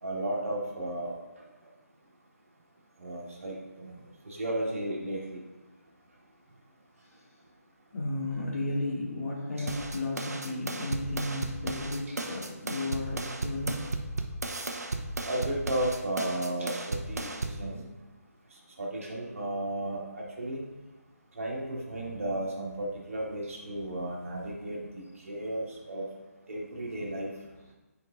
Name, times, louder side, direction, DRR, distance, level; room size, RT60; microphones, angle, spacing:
voice 1, 0.0-1.1 3.0-4.0 4.2-5.4 9.6-9.7 12.1-12.2 15.2-17.8 18.8-20.6 21.4-26.1 26.5-27.3, right 1 dB, 55° right, -3 dB, 1.9 m, -34 dB
voice 2, 7.9-13.8, left 2 dB, 60° left, -4 dB, 2.3 m, -34 dB
sound 1, 9.7-17.7, right 2 dB, 75° right, 0.8 m, -35 dB
10.0 x 5.0 x 2.6 m, 1.2 s
figure-of-eight pair, 155°, 9 cm